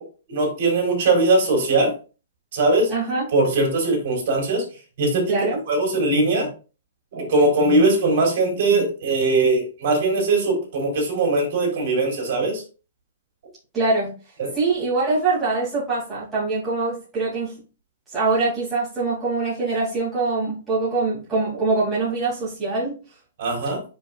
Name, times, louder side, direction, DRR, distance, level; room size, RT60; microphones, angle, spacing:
voice 1, 0.3-1.9 2.5-2.9 3.3-4.6 5.0-5.3 5.7-6.5 7.1-12.6 14.4-14.5 23.4-23.8, right 2 dB, 45° right, 0 dB, 3.9 m, -20 dB
voice 2, 2.9-3.2 5.3-5.6 13.7-14.2 14.5-17.6 18.1-23.0, right 3 dB, 5° right, -11 dB, 2.6 m, -23 dB
8.9 x 5.2 x 2.4 m, 0.34 s
hypercardioid pair, 175°, 0 cm